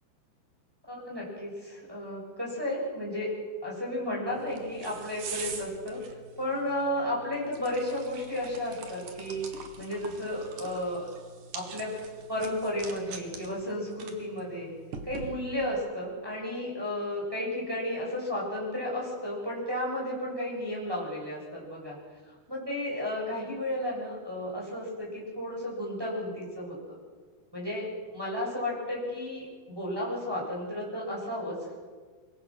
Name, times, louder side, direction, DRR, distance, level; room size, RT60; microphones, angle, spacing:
voice 1, 0.9-3.3 3.6-6.0 6.4-11.1 11.5-11.9 12.3-14.7 15.0-22.0 22.5-26.8 27.5-27.9 28.1-31.8, left 1 dB, 5° right, -4 dB, 7.4 m, -33 dB
sound 1, 4.3-15.7, right 5 dB, 60° right, 3.3 m, -44 dB
24.0 x 24.0 x 6.6 m, 1.5 s
omnidirectional pair, 4.8 m